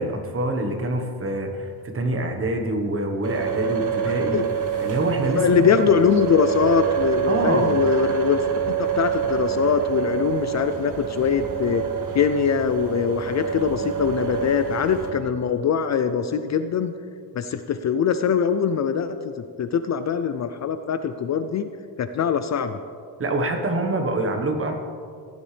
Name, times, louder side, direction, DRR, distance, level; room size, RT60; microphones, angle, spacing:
voice 1, 0.0-1.7 1.9-4.4 4.8-5.7 7.3-7.9 23.2-24.7, right 1 dB, 30° right, 4 dB, 1.3 m, -25 dB
sound 1, 3.2-15.1, right 8 dB, 45° right, 1.7 m, -26 dB
voice 2, 5.4-8.4 8.8-11.8 12.1-16.9 17.3-19.3 19.6-21.7 22.0-22.8, left 7 dB, 40° left, 10 dB, 0.4 m, -22 dB
16.0 x 10.5 x 3.3 m, 2.3 s
cardioid pair, 140°, 42 cm